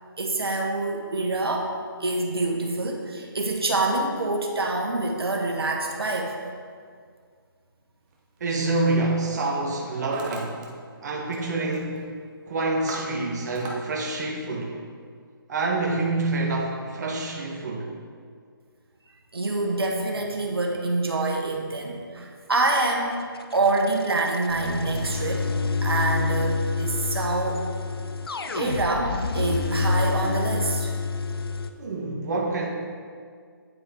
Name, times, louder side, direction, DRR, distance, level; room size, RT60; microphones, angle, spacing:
voice 1, 0.2-1.7 2.0-6.4 19.3-23.2 23.5-25.5 25.8-27.6 28.5-30.9, right 2 dB, 85° right, 0 dB, 1.6 m, -26 dB
Hammer, 8.1-8.4 9.1-9.4 9.7-10.7 10.9-11.5 11.7-12.1 12.5-13.8, right 4 dB, 20° right, 1.0 m, -38 dB
voice 2, 8.4-10.5 11.0-12.1 12.5-14.8 15.5-17.9 31.8-32.7, right 2 dB, 45° right, -1 dB, 1.3 m, -27 dB
sound 1, 23.1-31.7, left 4 dB, 80° left, 0.7 m, -28 dB
9.3 x 7.8 x 3.8 m, 2.1 s
hypercardioid pair, 155°, 12 cm